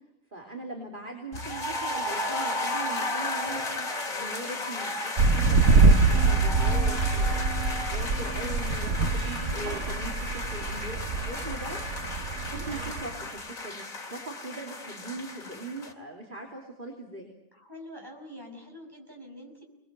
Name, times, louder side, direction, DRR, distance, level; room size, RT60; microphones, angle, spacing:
voice 1, 0.3-11.8 12.1-17.3, right 2 dB, 35° right, 0 dB, 3.3 m, -41 dB
sound 1, 1.3-15.9, left 2 dB, 80° left, 3.1 m, -34 dB
sound 2, 5.2-13.2, right 3 dB, 60° right, 1.6 m, -24 dB
sound 3, 6.1-12.4 12.7-13.1, right 8 dB, 80° right, 2.5 m, -46 dB
voice 2, 9.4-9.8 17.5-19.6, left 1 dB, 15° right, 1 dB, 5.6 m, -45 dB
27.5 x 21.0 x 7.7 m, 0.86 s
omnidirectional pair, 1.4 m